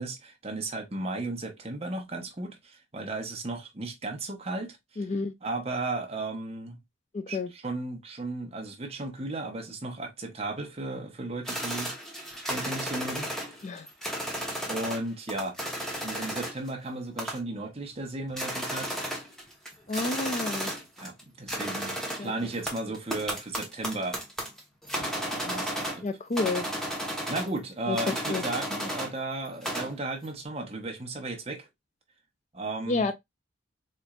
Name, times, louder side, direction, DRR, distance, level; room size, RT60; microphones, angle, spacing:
voice 1, 0.0-4.8 5.4-6.8 7.3-11.9 12.4-13.4 14.7-15.6 16.0-19.0 21.0-24.2 25.0-26.1 27.3-31.7 32.5-33.1, right 2 dB, 30° right, 0.9 m, -35 dB
voice 2, 5.0-5.3 7.1-7.5 13.6-13.9 19.9-20.7 22.2-22.3 26.0-26.7 27.9-28.0 28.3-28.4 32.9-33.1, left 3 dB, 35° left, 0.4 m, -30 dB
sound 1, 11.4-15.0 15.3-16.7 17.2-17.6 18.0-18.1 18.3-21.2 21.5-26.1 26.3-27.6 27.9-29.1 29.4-30.0, equal, 5° left, 1.0 m, -33 dB
4.3 x 3.1 x 2.3 m
head